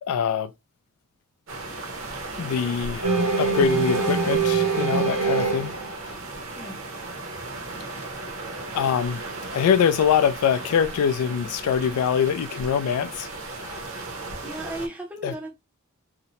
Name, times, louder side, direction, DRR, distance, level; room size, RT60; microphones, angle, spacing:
voice 1, 0.0-0.5 2.4-5.8 6.1-6.2 8.7-9.2 9.5-13.3 13.6-13.8 15.2-15.3, left 7 dB, 90° left, 0.3 m, -24 dB
sound 1, 1.5-14.9, right 3 dB, 60° right, 0.7 m, -36 dB
sound 2, 3.0-6.1, right 4 dB, 90° right, 0.9 m, -23 dB
voice 2, 14.4-15.5, right 1 dB, 5° right, 0.5 m, -35 dB
2.7 x 2.0 x 2.8 m
head